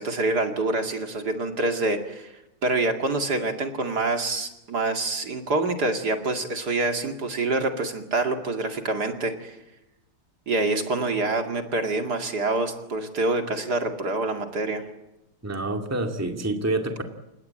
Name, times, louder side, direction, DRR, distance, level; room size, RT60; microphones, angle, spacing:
voice 1, 0.0-2.3 2.6-9.6 10.5-14.8, right 2 dB, 55° right, 5 dB, 2.7 m, -26 dB
voice 2, 15.4-17.0, right 2 dB, 10° right, 4 dB, 2.0 m, -27 dB
29.5 x 17.0 x 8.8 m, 0.93 s
omnidirectional pair, 2.1 m